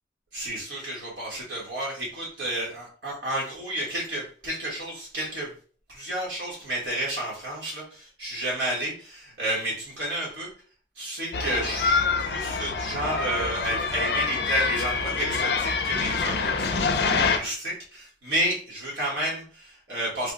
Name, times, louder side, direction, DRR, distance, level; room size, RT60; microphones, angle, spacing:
voice 1, 0.3-5.5 5.9-10.5 10.9-20.3, right 1 dB, 80° right, -4 dB, 1.3 m, -31 dB
sound 1, 11.3-17.4, left 4 dB, 65° left, 0.4 m, -26 dB
3.3 x 2.1 x 3.7 m, 0.41 s
head